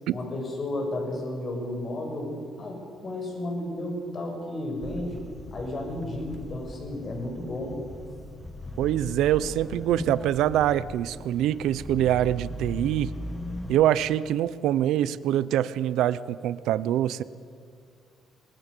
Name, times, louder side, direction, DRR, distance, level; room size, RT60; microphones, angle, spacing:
voice 1, 0.1-2.3 2.6-5.2 5.5-7.8, left 1 dB, 40° left, 1 dB, 7.1 m, -33 dB
sound 1, 4.8-13.8, left 1 dB, 15° left, 1.5 m, -39 dB
voice 2, 8.8-13.1 13.7-17.2, right 12 dB, 80° right, 18 dB, 0.7 m, -24 dB
25.5 x 20.0 x 6.8 m, 2.3 s
cardioid pair, 120°, 0 cm